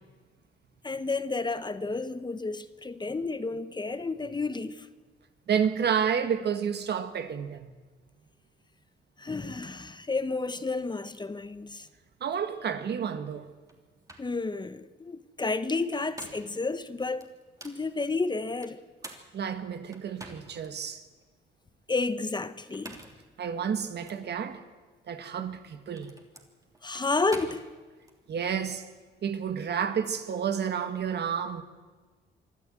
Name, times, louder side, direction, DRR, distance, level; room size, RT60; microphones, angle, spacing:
voice 1, 0.8-4.9 9.2-11.9 14.2-17.3 17.6-18.8 21.9-23.0 26.8-27.7, left 3 dB, 20° left, 1.1 m, -31 dB
voice 2, 5.5-7.7 12.2-13.5 19.3-21.0 23.4-24.6 25.1-26.1 28.3-28.8 29.2-31.6, right 7 dB, 60° right, 1.8 m, -30 dB
sound 1, 13.7-13.8 14.1-14.3 15.7-16.6 17.2-17.8 18.6-20.7 21.2-21.3 22.6-23.3 24.0-24.2 25.4-28.2, right 1 dB, 15° right, 3.2 m, -47 dB
24.5 x 13.0 x 9.1 m
cardioid pair, 90°, 20 cm